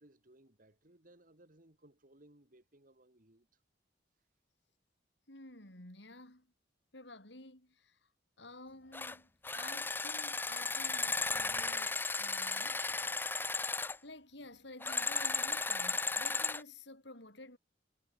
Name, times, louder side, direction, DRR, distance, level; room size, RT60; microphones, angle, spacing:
voice 1, 0.0-3.5, right 1 dB, 45° right, 3.0 m, -63 dB
voice 2, 5.3-6.5 6.9-8.1 8.4-13.1 14.0-17.6, left 2 dB, 65° left, 5.9 m, -52 dB
sound 1, 8.9-9.2 9.4-14.0 14.8-16.6, left 3 dB, 10° left, 0.5 m, -35 dB
head